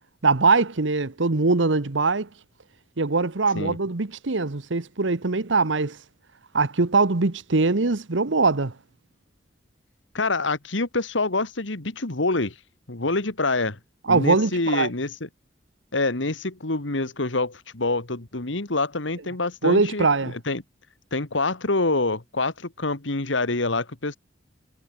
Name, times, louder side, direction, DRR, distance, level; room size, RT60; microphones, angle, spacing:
voice 1, 0.2-2.3 3.0-6.0 6.5-8.7 14.1-14.9 19.6-20.3, right 3 dB, 75° right, 1.1 m, -22 dB
voice 2, 10.1-12.5 12.9-13.8 14.1-15.3 15.9-20.1 20.3-20.6 21.1-24.2, left 2 dB, 75° left, 2.0 m, -26 dB
head